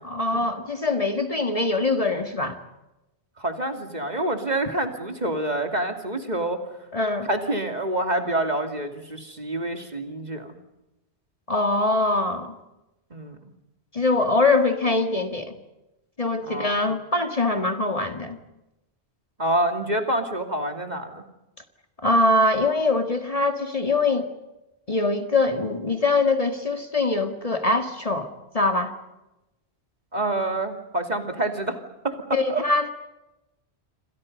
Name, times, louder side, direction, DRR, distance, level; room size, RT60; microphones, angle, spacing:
voice 1, 0.0-2.6 6.9-7.3 11.5-12.5 13.9-15.6 16.2-18.4 22.0-24.3 24.9-28.3 28.5-28.9 32.3-32.9, left 2 dB, 35° left, 6 dB, 2.0 m, -23 dB
voice 2, 3.4-6.6 7.2-10.5 13.1-13.4 16.4-16.9 19.4-21.2 30.1-31.8 32.0-32.6, right 1 dB, 40° right, 5 dB, 2.9 m, -27 dB
28.5 x 27.0 x 5.5 m, 0.93 s
omnidirectional pair, 1.1 m